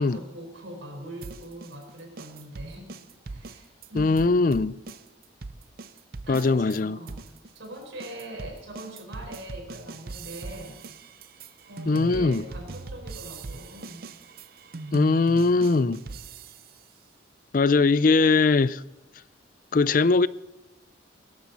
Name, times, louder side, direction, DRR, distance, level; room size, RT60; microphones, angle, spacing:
voice 1, 0.0-2.9 3.3-4.3 6.3-7.2 7.5-10.7 11.7-14.1, right 1 dB, 75° right, 4.6 m, -42 dB
sound 1, 1.2-6.8 7.1-16.8, right 3 dB, 50° right, 0.6 m, -41 dB
voice 2, 3.9-4.7 6.3-7.0 11.9-12.4 14.9-16.0 17.5-18.8 19.7-20.3, left 3 dB, 45° left, 0.4 m, -21 dB
18.5 x 13.0 x 4.1 m
head